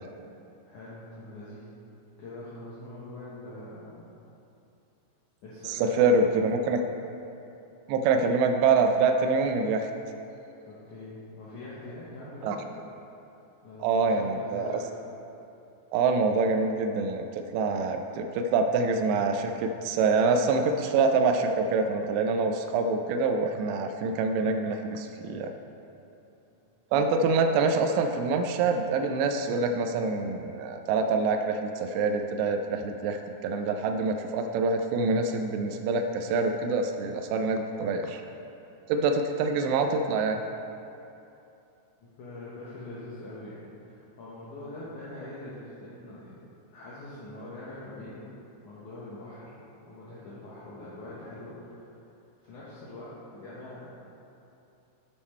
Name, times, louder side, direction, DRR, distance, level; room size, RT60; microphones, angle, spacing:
voice 1, 0.7-1.7 2.2-4.1 5.4-6.4 10.6-12.6 13.6-14.9 26.5-26.6 42.0-46.5 46.7-48.3 48.6-51.9 52.4-53.9, left 2 dB, 75° left, -9 dB, 1.9 m, -43 dB
voice 2, 5.7-6.8 7.9-9.9 12.4-12.6 13.8-14.7 15.9-17.2 17.5-25.5 26.9-38.2 38.9-40.4, right 4 dB, 85° right, 4 dB, 2.6 m, -25 dB
8.2 x 7.3 x 4.3 m, 2.8 s
omnidirectional pair, 5.1 m